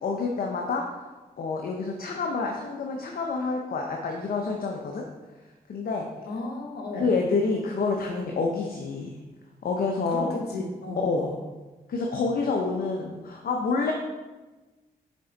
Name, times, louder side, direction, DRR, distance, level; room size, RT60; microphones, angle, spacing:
voice 1, 0.0-0.8 1.4-5.0 5.7-6.1 6.9-9.2 9.6-10.3 11.0-11.3 11.9-13.9, left 4 dB, 65° left, 1 dB, 0.8 m, -28 dB
voice 2, 6.2-7.1 10.0-11.4, left 2 dB, 80° left, 2 dB, 1.2 m, -34 dB
6.3 x 4.4 x 4.0 m, 1.2 s
cardioid pair, 55°, 16 cm